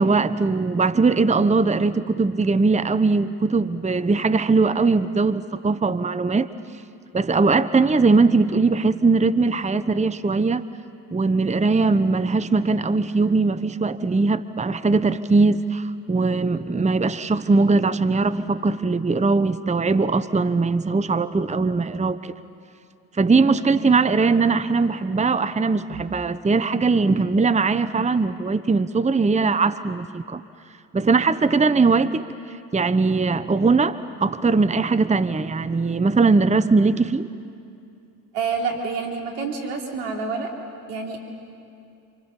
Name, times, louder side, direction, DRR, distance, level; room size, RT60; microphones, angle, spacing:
voice 1, 0.0-6.5 7.1-10.6 11.1-22.3 23.2-30.4 30.9-37.3, right 4 dB, 15° right, 14 dB, 1.0 m, -20 dB
voice 2, 23.3-23.6 38.3-40.5 40.9-41.2, right 4 dB, 85° right, 1 dB, 3.3 m, -28 dB
29.0 x 27.0 x 7.3 m, 2.5 s
hypercardioid pair, 50°, 46 cm